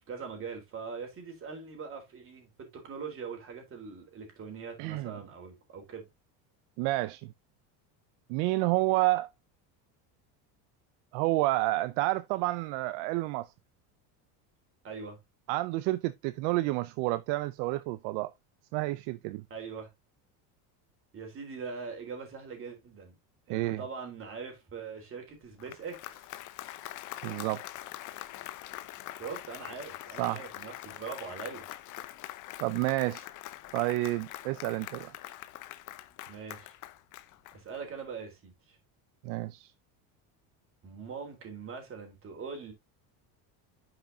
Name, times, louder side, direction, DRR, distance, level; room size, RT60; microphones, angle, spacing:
voice 1, 0.1-6.1 14.8-15.2 19.5-19.9 21.1-23.2 23.5-26.3 29.1-31.7 36.3-36.7 37.5-38.8 40.8-42.7, right 5 dB, 30° right, 3.7 m, -42 dB
voice 2, 4.8-5.1 6.8-7.3 8.3-9.3 11.1-13.5 15.5-18.3 18.7-19.4 23.5-23.8 27.2-27.6 30.2-30.4 32.6-33.3 33.7-35.1 39.2-39.7, right 19 dB, 65° right, 0.6 m, -29 dB
Applause, 25.4-38.0, left 15 dB, 45° left, 0.8 m, -44 dB
10.0 x 5.9 x 2.7 m
cardioid pair, 155°, 44 cm